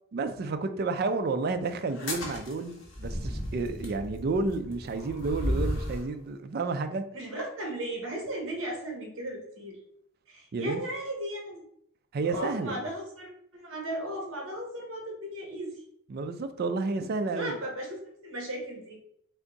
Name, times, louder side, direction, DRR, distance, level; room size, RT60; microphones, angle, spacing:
voice 1, 0.1-7.0 10.5-10.8 12.1-12.8 16.1-17.6, right 3 dB, 45° right, 0.3 m, -31 dB
sound 1, 1.9-6.1, equal, 55° left, 1.1 m, -34 dB
voice 2, 7.1-9.8 10.3-11.6 12.2-15.7 17.3-19.0, right 1 dB, 60° right, 1.0 m, -36 dB
3.5 x 2.6 x 3.8 m
head